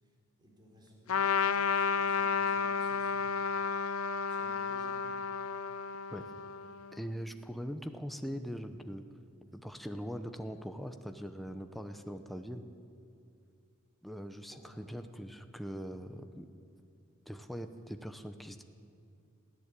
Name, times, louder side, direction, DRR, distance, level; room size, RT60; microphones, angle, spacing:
voice 1, 0.0-3.6 4.3-5.0 14.5-15.0, equal, 20° right, -1 dB, 4.1 m, -58 dB
Trumpet, 1.1-7.0, left 6 dB, 70° left, 0.7 m, -32 dB
voice 2, 6.9-9.0 9.5-12.6 14.0-16.5 17.3-18.6, equal, ahead, 7 dB, 0.8 m, -41 dB
21.5 x 15.5 x 8.4 m, 2.5 s
head